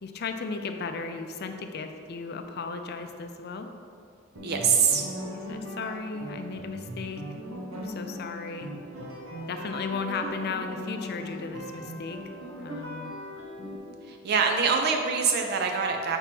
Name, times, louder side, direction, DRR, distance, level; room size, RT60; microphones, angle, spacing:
voice 1, 0.0-3.7 5.3-7.2 7.7-8.7 9.5-12.2 12.6-13.1, left 4 dB, 50° left, 6 dB, 0.5 m, -35 dB
voice 2, 4.4-5.1 14.1-16.2, right 5 dB, 50° right, 3 dB, 0.4 m, -24 dB
sound 1, 4.4-13.8, equal, 80° right, 0.9 m, -39 dB
4.5 x 4.4 x 5.9 m, 2.5 s
head